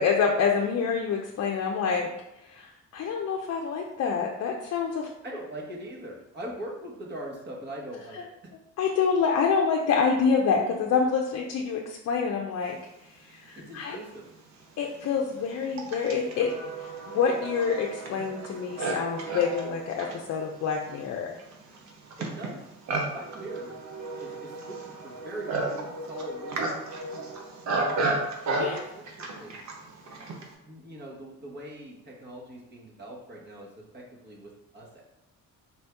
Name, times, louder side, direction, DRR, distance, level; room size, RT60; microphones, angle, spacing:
voice 1, 0.0-2.1 2.5-2.7 2.9-5.1 8.8-12.8 13.2-14.0 14.8-16.5 16.8-21.3 28.6-28.8, left 6 dB, 60° left, 0 dB, 0.5 m, -27 dB
voice 2, 5.2-8.3 13.5-14.2 22.2-22.6 23.1-23.9 24.2-26.6 27.7-28.1 28.6-29.5 30.6-35.0, right 1 dB, 35° right, -3 dB, 1.2 m, -42 dB
Livestock farm animals working animals, 13.8-13.9 14.6-30.5, right 2 dB, 65° right, 0.8 m, -33 dB
4.4 x 2.7 x 3.4 m, 0.89 s
cardioid pair, 90°, 30 cm